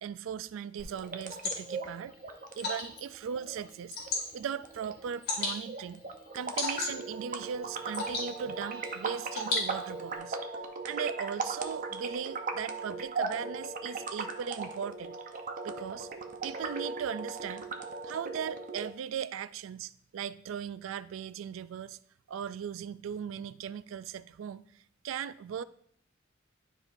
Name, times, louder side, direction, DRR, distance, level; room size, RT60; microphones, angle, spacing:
voice 1, 0.0-2.1 2.6-4.0 4.3-6.0 6.3-10.4 10.9-15.2 15.6-16.1 16.4-17.7 18.1-22.0 22.3-24.6 25.0-25.6, right 8 dB, 75° right, 0.3 m, -38 dB
Water / Drip, 0.8-10.2, left 3 dB, 50° left, 2.7 m, -38 dB
sound 1, 0.9-18.9, right 4 dB, 40° right, 0.7 m, -38 dB
12.0 x 4.7 x 2.6 m
head